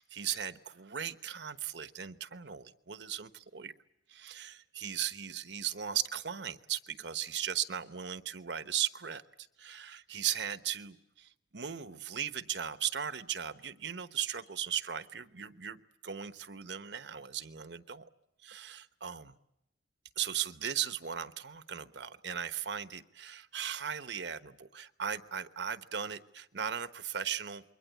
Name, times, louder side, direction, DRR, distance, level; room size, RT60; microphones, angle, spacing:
voice 1, 0.0-3.7 4.1-9.2 9.6-18.0 18.4-19.3 20.2-27.6, right 9 dB, 70° right, 13 dB, 1.1 m, -37 dB
28.0 x 22.5 x 8.2 m, 0.86 s
head